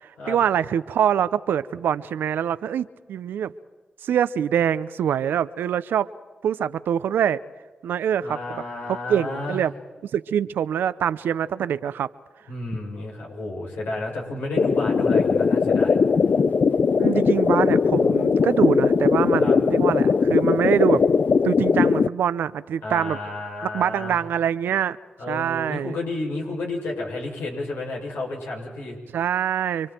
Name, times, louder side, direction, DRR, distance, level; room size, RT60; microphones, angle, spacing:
voice 1, 0.0-3.5 4.0-6.1 6.4-7.4 7.8-8.6 8.9-9.7 10.1-12.1 17.0-21.0 21.4-23.2 23.6-25.0 25.3-25.9 29.1-29.9, right 9 dB, 85° right, 15 dB, 0.7 m, -24 dB
voice 2, 8.2-9.6 12.5-16.0 19.4-19.6 22.8-24.2 25.2-29.0, left 2 dB, 85° left, -2 dB, 7.3 m, -31 dB
sound 1, 14.6-22.1, left 5 dB, 60° left, 0.6 m, -19 dB
30.0 x 23.5 x 4.6 m, 1.3 s
supercardioid pair, 40°, 3 cm